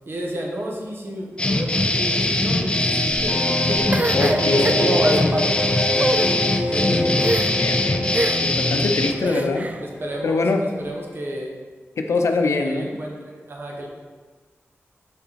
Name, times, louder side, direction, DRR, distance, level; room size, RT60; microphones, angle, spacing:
voice 1, 0.1-6.1 6.7-7.2 8.9-11.5 12.6-13.9, right 1 dB, 55° right, -1 dB, 1.2 m, -29 dB
sound 1, 1.4-9.1, left 2 dB, 20° left, 0.5 m, -22 dB
sound 2, 3.3-10.7 11.0-11.1 11.4-11.5, left 1 dB, 45° left, 0.8 m, -28 dB
sound 3, 3.9-5.2 5.9-6.3 7.2-7.7 8.1-8.6 9.2-9.8, right 2 dB, 35° right, 0.4 m, -26 dB
voice 2, 4.1-5.5 7.6-8.0 8.4-9.7 10.2-10.6 12.0-12.9, left 3 dB, 80° left, 4 dB, 0.6 m, -24 dB
6.7 x 5.6 x 4.1 m, 1.4 s
wide cardioid pair, 120°, 5 cm